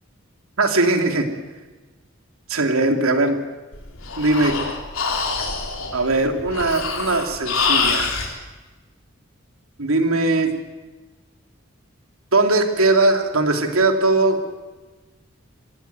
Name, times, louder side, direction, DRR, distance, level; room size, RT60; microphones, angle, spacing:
voice 1, 0.6-1.3 2.5-3.4 4.2-4.6 5.4-5.5 5.9-8.2 9.8-10.5 12.3-14.5, right 2 dB, 85° right, 5 dB, 2.9 m, -19 dB
Breathing, 3.7-8.3, left 4 dB, 80° left, 3.5 m, -25 dB
26.5 x 16.0 x 9.4 m, 1.2 s
head